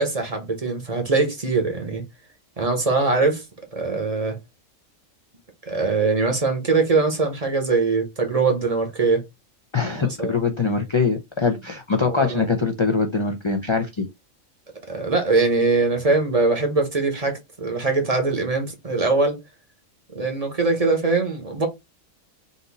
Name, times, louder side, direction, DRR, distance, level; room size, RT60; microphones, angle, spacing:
voice 1, 0.0-2.0 2.6-3.4 3.7-4.4 5.7-9.2 10.0-10.4 12.0-12.5 14.9-19.4 20.1-21.7, right 3 dB, 30° right, 0.9 m, -22 dB
voice 2, 9.7-14.1, left 4 dB, 45° left, 0.3 m, -23 dB
4.1 x 2.6 x 4.0 m
omnidirectional pair, 1.4 m